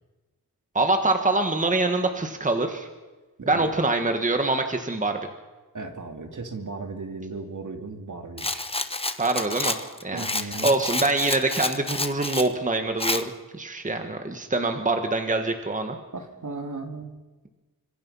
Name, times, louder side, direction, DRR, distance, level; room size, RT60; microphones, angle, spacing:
voice 1, 0.7-2.9 3.5-5.2 9.2-9.8 10.0-16.0, right 2 dB, 20° right, 5 dB, 1.6 m, -25 dB
voice 2, 3.4-3.7 5.7-8.7 10.1-10.8 16.1-17.1, right 3 dB, 50° right, 5 dB, 2.8 m, -36 dB
Rattle, 8.4-12.5 13.0-13.2, left 2 dB, 15° left, 1.1 m, -29 dB
27.5 x 25.5 x 5.7 m, 1.2 s
wide cardioid pair, 160°, 38 cm